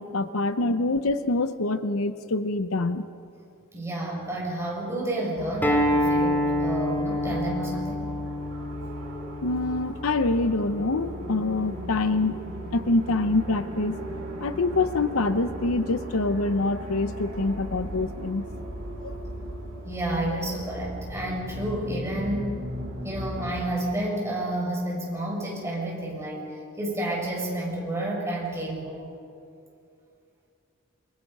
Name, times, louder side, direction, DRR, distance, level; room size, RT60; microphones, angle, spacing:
voice 1, 0.0-3.1 9.4-14.0 14.4-18.5 19.0-19.2, left 2 dB, 70° left, 11 dB, 0.8 m, -25 dB
voice 2, 3.7-8.1 19.8-22.6 23.0-29.1, right 1 dB, 15° right, -3 dB, 6.4 m, -30 dB
sound 1, 5.4-23.6, right 1 dB, 70° right, 6.6 m, -37 dB
Acoustic guitar, 5.6-10.8, left 1 dB, 10° left, 2.4 m, -27 dB
28.0 x 24.0 x 5.4 m, 2.5 s
head